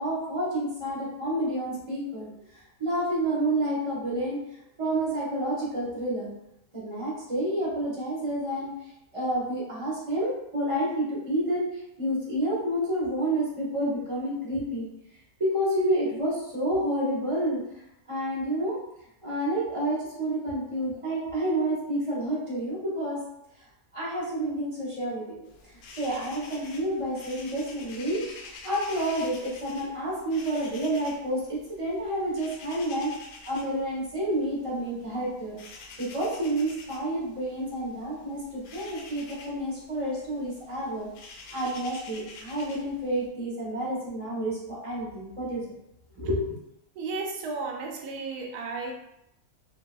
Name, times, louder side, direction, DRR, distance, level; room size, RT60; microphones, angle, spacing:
voice 1, 0.0-4.4 4.8-6.3 6.7-14.9 15.4-17.6 18.1-18.8 19.2-23.2 23.9-33.1 33.4-35.6 36.0-41.1 41.5-45.6 46.1-46.5, right 1 dB, 25° right, -6 dB, 0.9 m, -29 dB
sound 1, 25.5-43.3, left 3 dB, 75° left, 1.0 m, -48 dB
voice 2, 46.9-48.9, right 3 dB, 85° right, 1 dB, 1.2 m, -33 dB
3.6 x 2.7 x 2.2 m, 0.82 s
omnidirectional pair, 1.6 m